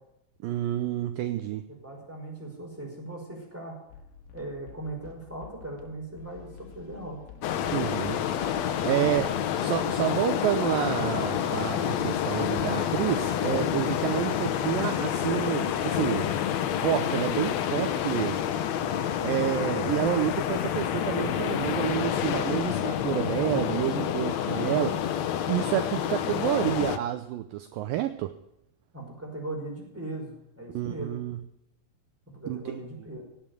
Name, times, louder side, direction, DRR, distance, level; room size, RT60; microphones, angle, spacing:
voice 1, 0.4-1.6 7.7-8.6 8.8-9.3 9.6-16.3 16.8-18.4 18.7-18.9 19.2-25.0 25.5-28.3 30.7-31.4 32.5-32.6, right 13 dB, 75° right, 9 dB, 2.3 m, -29 dB
voice 2, 1.7-3.8 4.3-7.2 28.9-31.2 32.3-33.3, right 2 dB, 5° right, -1 dB, 4.9 m, -39 dB
sound 1, 3.9-9.5, left 7 dB, 65° left, 2.9 m, -49 dB
sound 2, 7.4-27.0, left 9 dB, 80° left, 1.6 m, -28 dB
17.5 x 7.3 x 9.7 m, 0.82 s
omnidirectional pair, 4.4 m